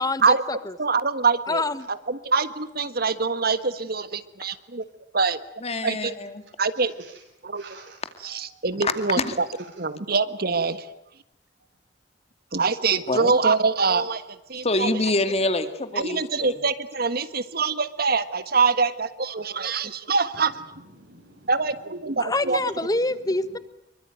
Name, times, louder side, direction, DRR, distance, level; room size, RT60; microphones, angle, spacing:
voice 1, 0.0-0.7 1.5-1.9 22.2-23.6, left 2 dB, 20° left, 14 dB, 1.3 m, -26 dB
voice 2, 0.8-1.6 1.9-4.8 5.1-5.4 5.8-6.1 6.6-6.9 7.4-7.6 8.2-9.5 9.8-10.8 12.5-14.2 14.5-14.9 16.0-20.5 21.5-22.6, right 4 dB, 60° right, 13 dB, 1.5 m, -24 dB
voice 3, 5.6-6.4 8.8-9.4 13.1-13.4 14.6-16.5, left 2 dB, 35° left, 10 dB, 2.4 m, -26 dB
voice 4, 7.5-8.7 9.8-9.9 20.3-21.6 22.1-22.2 23.0-23.3, right 3 dB, 85° right, 0 dB, 7.5 m, -50 dB
26.0 x 23.5 x 9.3 m, 0.82 s
head